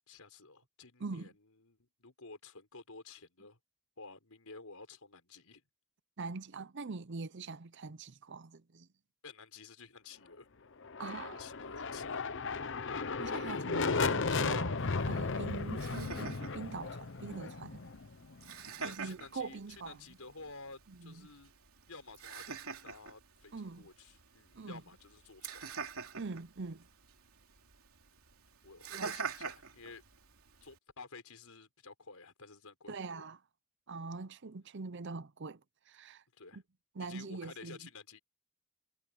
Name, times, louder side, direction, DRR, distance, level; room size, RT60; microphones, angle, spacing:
voice 1, 0.1-3.6 4.0-5.6 9.2-10.5 11.2-12.5 18.8-21.5 21.9-25.7 28.6-30.0 30.6-33.3 36.4-36.6 37.0-38.2, left 4 dB, 80° left, 5.0 m, -52 dB
voice 2, 6.2-8.9 11.0-11.8 13.2-17.8 18.8-20.0 20.9-21.3 23.5-23.9 24.5-24.8 26.2-26.9 28.9-29.1 32.9-33.4 33.9-35.6 35.9-36.2 36.5-36.6 36.9-37.8, right 4 dB, 55° right, 0.7 m, -43 dB
sound 1, 10.8-18.6, left 4 dB, 55° left, 0.9 m, -35 dB
Laughter, 14.8-30.8, right 6 dB, 80° right, 3.1 m, -47 dB
head